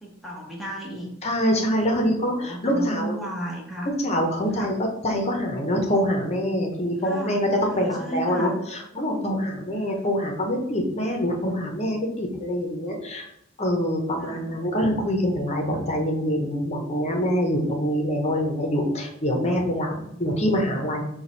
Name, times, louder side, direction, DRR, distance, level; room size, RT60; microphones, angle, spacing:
voice 1, 0.0-1.1 2.0-3.9 4.5-4.7 7.0-8.5 14.2-14.5 20.0-20.2, right 1 dB, ahead, -2 dB, 0.6 m, -35 dB
voice 2, 1.2-3.2 4.0-13.3 13.6-19.9 20.2-21.0, equal, 30° left, 1 dB, 0.8 m, -25 dB
4.5 x 2.3 x 4.2 m, 0.75 s
head